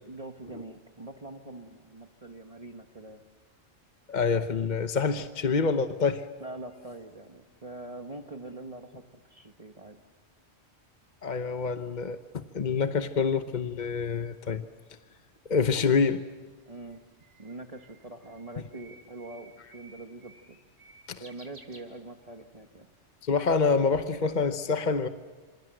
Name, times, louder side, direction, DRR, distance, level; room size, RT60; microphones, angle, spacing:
voice 1, 0.0-3.2 6.4-10.0 16.7-17.1 17.4-20.6 21.2-22.9, right 2 dB, 35° right, 5 dB, 1.4 m, -44 dB
voice 2, 4.1-6.2 11.2-14.6 15.5-16.2 21.1-21.2 23.2-25.1, left 5 dB, 45° left, 9 dB, 1.0 m, -26 dB
Bird, 16.5-22.5, right 2 dB, 50° right, 3.7 m, -55 dB
27.0 x 27.0 x 7.8 m, 1.5 s
omnidirectional pair, 1.1 m